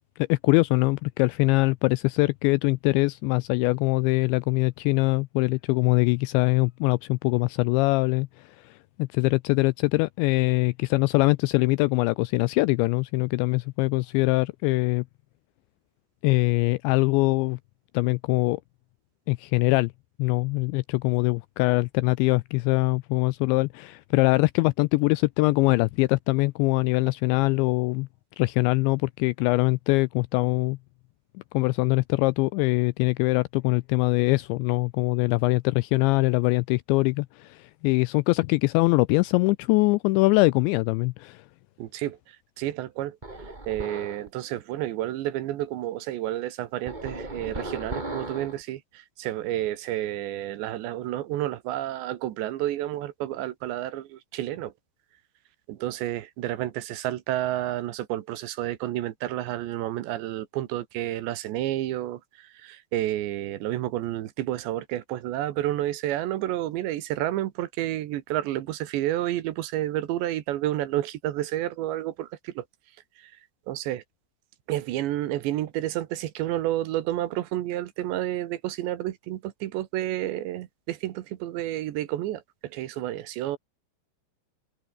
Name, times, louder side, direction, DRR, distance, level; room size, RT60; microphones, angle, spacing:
voice 1, 0.3-15.1 16.2-17.6 17.9-18.6 19.3-19.9 20.2-28.1 28.4-30.8 31.5-41.4, left 24 dB, 85° left, 2.6 m, -23 dB
voice 2, 41.8-42.2 42.6-43.2 43.7-54.7 55.7-72.6 73.2-73.3 73.7-74.0 74.7-83.6, right 14 dB, 70° right, 3.3 m, -30 dB
sound 1, 43.2-44.3 46.9-48.6, right 2 dB, 10° right, 2.5 m, -36 dB
omnidirectional pair, 5.6 m